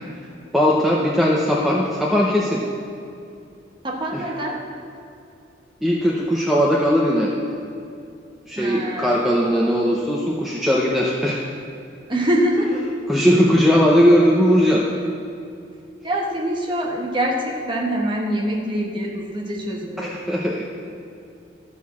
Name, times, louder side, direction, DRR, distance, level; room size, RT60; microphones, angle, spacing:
voice 1, 0.5-2.6 4.1-4.3 5.8-7.3 8.5-11.4 13.1-14.8 20.0-20.6, equal, ahead, -3 dB, 0.6 m, -18 dB
voice 2, 3.8-4.6 8.6-9.3 12.1-12.8 13.2-13.3 16.0-20.2, equal, 25° right, -1 dB, 1.3 m, -24 dB
13.5 x 4.8 x 6.9 m, 2.6 s
head